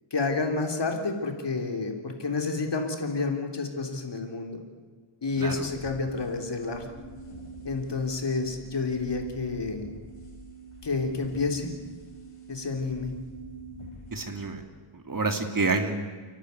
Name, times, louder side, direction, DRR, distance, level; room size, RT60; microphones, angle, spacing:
voice 1, 0.1-4.6 5.2-6.9 7.6-9.9 10.8-11.7 12.5-13.2, left 3 dB, 55° left, 4 dB, 3.3 m, -29 dB
sound 1, 5.5-14.5, right 2 dB, 85° left, 5.0 m, -44 dB
voice 2, 14.1-14.6 15.1-15.9, right 3 dB, 40° right, 6 dB, 2.7 m, -28 dB
30.0 x 11.5 x 9.5 m, 1.5 s
wide cardioid pair, 80°, 50 cm